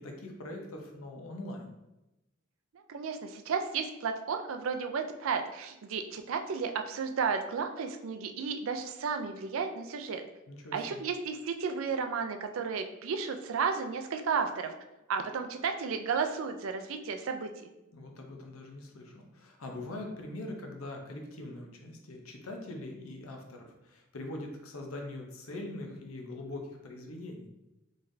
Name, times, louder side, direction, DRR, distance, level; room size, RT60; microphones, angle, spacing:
voice 1, 0.0-1.7 10.5-11.0 17.9-27.5, left 1 dB, 80° left, 2 dB, 0.7 m, -42 dB
voice 2, 2.7-10.2 10.7-14.8 15.1-17.7, right 5 dB, 70° right, 6 dB, 0.4 m, -33 dB
3.8 x 3.2 x 2.6 m, 0.96 s
head